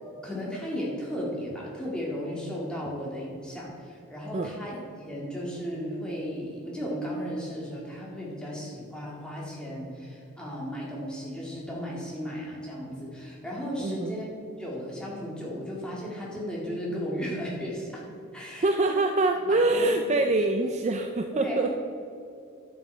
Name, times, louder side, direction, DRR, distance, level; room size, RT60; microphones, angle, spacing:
voice 1, 0.0-14.3 14.6-18.0 18.3-18.9 19.5-19.9 20.4-20.7 21.3-21.7, equal, 5° left, -5 dB, 2.0 m, -35 dB
voice 2, 13.8-14.1 18.6-21.8, right 2 dB, 30° right, 5 dB, 0.4 m, -25 dB
12.0 x 6.3 x 4.4 m, 2.6 s
head